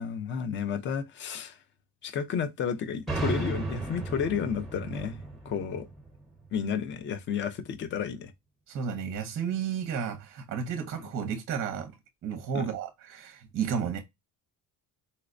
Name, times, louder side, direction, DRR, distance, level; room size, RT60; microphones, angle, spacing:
voice 1, 0.0-1.6 2.0-5.2 5.4-5.9 6.5-8.3 11.0-11.1 12.5-12.7, left 7 dB, 35° left, 0.4 m, -32 dB
sound 1, 3.1-6.7, right 2 dB, ahead, 0.7 m, -35 dB
voice 2, 8.7-11.9 12.2-14.0, right 7 dB, 35° right, 0.6 m, -32 dB
4.1 x 2.0 x 2.4 m
cardioid pair, 155°, 37 cm